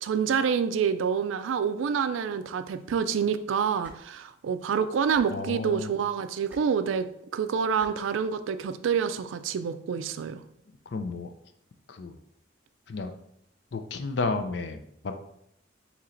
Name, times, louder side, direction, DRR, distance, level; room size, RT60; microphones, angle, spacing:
voice 1, 0.0-7.1 7.3-10.4, right 7 dB, 90° right, 11 dB, 0.3 m, -27 dB
sound 1, 3.8-4.0 5.1-5.2 6.5-6.6 7.8-7.9 9.1-9.2, right 1 dB, 10° right, 0.8 m, -48 dB
voice 2, 5.3-5.9 10.9-11.3 11.9-12.2 12.9-13.1 13.7-15.1, left 3 dB, 60° left, 7 dB, 0.5 m, -32 dB
4.2 x 3.0 x 3.8 m, 0.75 s
head